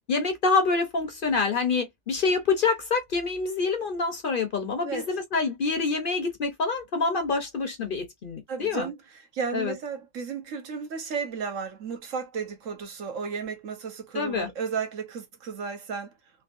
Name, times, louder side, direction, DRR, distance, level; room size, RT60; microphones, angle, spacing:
voice 1, 0.1-8.9 9.5-9.7 14.1-14.5, left 4 dB, 50° left, 0.8 m, -26 dB
voice 2, 8.5-9.0 9.3-16.1, right 5 dB, 75° right, 1.3 m, -33 dB
3.5 x 2.7 x 2.4 m
omnidirectional pair, 1.4 m